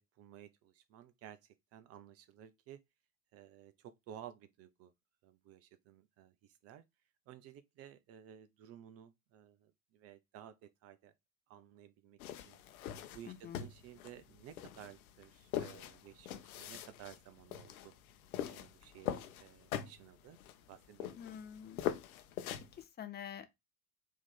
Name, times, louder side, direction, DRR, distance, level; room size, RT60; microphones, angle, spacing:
voice 1, 0.0-2.8 3.3-4.9 5.2-6.8 7.3-11.1 11.5-12.2 12.4-12.6 13.1-18.0 18.5-20.4 20.7-21.2, right 10 dB, 35° right, 0.5 m, -55 dB
sound 1, 12.2-22.8, left 10 dB, 65° left, 0.8 m, -43 dB
voice 2, 13.2-13.6 21.1-21.9 22.7-23.6, left 9 dB, 20° left, 0.6 m, -47 dB
4.7 x 2.8 x 3.6 m
figure-of-eight pair, 75°, 45 cm